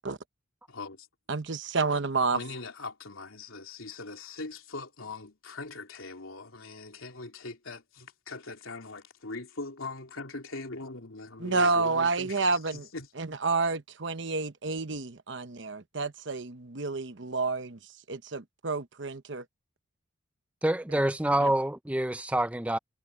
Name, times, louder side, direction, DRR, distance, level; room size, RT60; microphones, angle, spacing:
voice 1, 0.7-1.1 2.3-13.1, left 3 dB, 85° left, 3.4 m, -41 dB
voice 2, 1.3-2.4 11.4-12.9 13.2-17.8 18.1-19.4 21.4-21.5, right 3 dB, 60° right, 1.0 m, -29 dB
voice 3, 20.6-22.8, right 1 dB, 5° right, 0.6 m, -27 dB
head